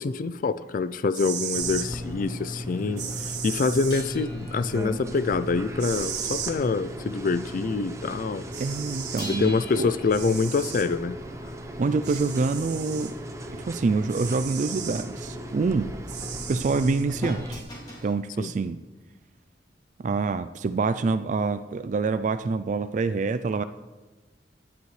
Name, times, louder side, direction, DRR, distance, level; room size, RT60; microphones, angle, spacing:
voice 1, 0.0-8.4 9.4-11.2 18.4-18.5, left 4 dB, 50° left, 14 dB, 0.4 m, -26 dB
sound 1, 1.0-1.9 3.0-4.0 5.8-6.5 8.0-8.1 8.5-9.3 10.1-10.9 12.0-13.1 14.1-15.1 16.1-17.0, right 8 dB, 70° right, 1.8 m, -35 dB
sound 2, 1.6-17.6, equal, 15° right, 0.9 m, -37 dB
sound 3, 3.9-7.0 7.3-7.6 9.2-11.9 17.2-18.2 19.2-19.3, equal, 25° left, 2.9 m, -43 dB
voice 2, 8.6-9.9 11.8-13.2 13.6-15.9 16.5-17.6 18.0-18.8 20.0-23.6, right 4 dB, 45° right, 12 dB, 0.3 m, -26 dB
17.5 x 10.5 x 3.2 m, 1.2 s
head